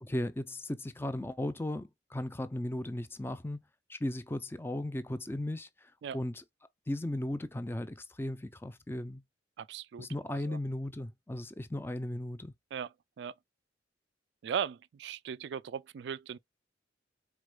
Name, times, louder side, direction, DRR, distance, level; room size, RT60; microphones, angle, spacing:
voice 1, 0.0-3.6 3.9-6.4 6.9-9.2 10.0-12.5, left 1 dB, 10° left, 0.5 m, -36 dB
voice 2, 9.6-10.6 12.7-13.3 14.4-16.4, right 7 dB, 65° right, 0.3 m, -38 dB
4.7 x 4.2 x 2.3 m
head